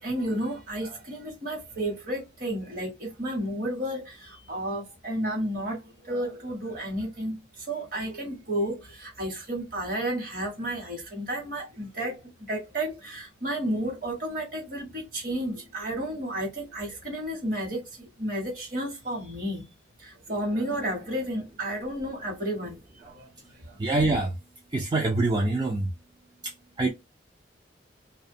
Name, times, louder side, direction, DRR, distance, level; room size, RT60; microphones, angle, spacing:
voice 1, 0.0-19.7 20.0-23.3 23.6-23.8, right 1 dB, 50° right, 1.0 m, -32 dB
voice 2, 23.8-24.3 24.7-25.9 26.8-26.9, right 2 dB, 20° right, 0.3 m, -24 dB
2.4 x 2.1 x 2.6 m
head